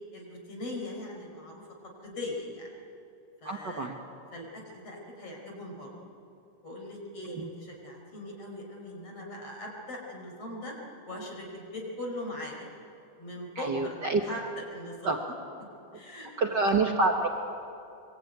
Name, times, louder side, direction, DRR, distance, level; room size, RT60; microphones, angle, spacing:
voice 1, 0.1-1.6 2.0-2.7 3.4-3.9 4.3-5.9 6.6-10.7 11.1-12.7 13.2-14.0 14.2-15.2 15.9-16.6, left 1 dB, 40° left, 0 dB, 5.8 m, -40 dB
voice 2, 3.4-4.0 7.3-7.5 13.5-14.2 15.0-15.2 16.4-17.3, right 3 dB, 70° right, 3 dB, 1.0 m, -27 dB
24.0 x 23.0 x 9.3 m, 2.6 s
omnidirectional pair, 4.1 m